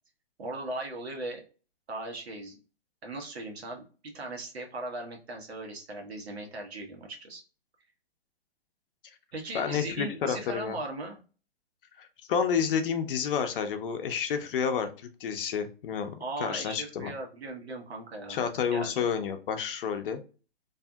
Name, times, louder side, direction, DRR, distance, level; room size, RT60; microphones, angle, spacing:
voice 1, 0.4-1.4 1.9-2.6 3.0-7.4 9.3-11.2 16.2-18.9, right 2 dB, 80° right, 2 dB, 1.0 m, -38 dB
voice 2, 9.5-10.8 12.0-14.9 15.2-16.1 16.4-17.1 18.3-20.2, left 7 dB, 60° left, 7 dB, 0.6 m, -30 dB
2.6 x 2.5 x 2.2 m, 0.36 s
hypercardioid pair, 120°, 31 cm